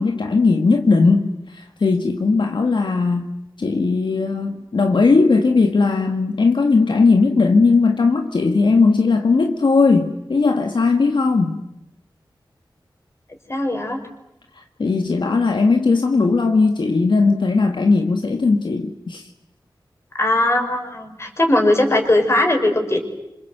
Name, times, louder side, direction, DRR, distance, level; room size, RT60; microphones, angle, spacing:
voice 1, 0.0-3.3 3.6-11.6 14.5-19.3, left 4 dB, 70° left, 5 dB, 1.7 m, -18 dB
voice 2, 13.5-14.0 20.2-23.0, left 1 dB, 35° left, 4 dB, 5.3 m, -19 dB
27.5 x 26.5 x 8.0 m, 0.87 s
wide cardioid pair, 90°, 8 cm